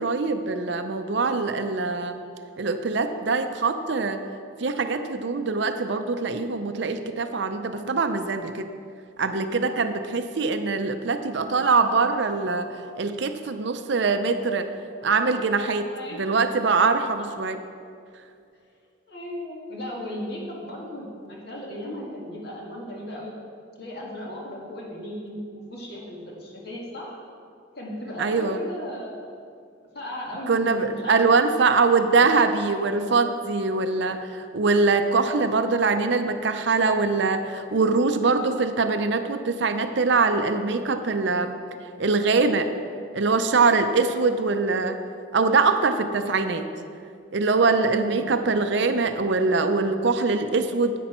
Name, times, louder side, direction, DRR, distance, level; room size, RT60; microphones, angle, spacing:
voice 1, 0.0-2.2 2.6-4.2 4.6-8.6 9.2-12.7 13.0-14.7 15.0-15.9 16.2-17.6 28.2-28.6 30.5-41.6 42.0-42.7 43.1-45.0 45.3-46.7 47.3-50.9, right 4 dB, 60° right, 8 dB, 0.5 m, -23 dB
voice 2, 9.8-10.2 15.9-16.2 19.1-23.3 23.8-27.2 27.7-29.4 29.9-31.2 31.6-32.4 32.7-33.0 44.1-44.5 47.7-48.4, equal, 55° left, -3 dB, 1.9 m, -36 dB
10.0 x 8.2 x 4.4 m, 2.4 s
head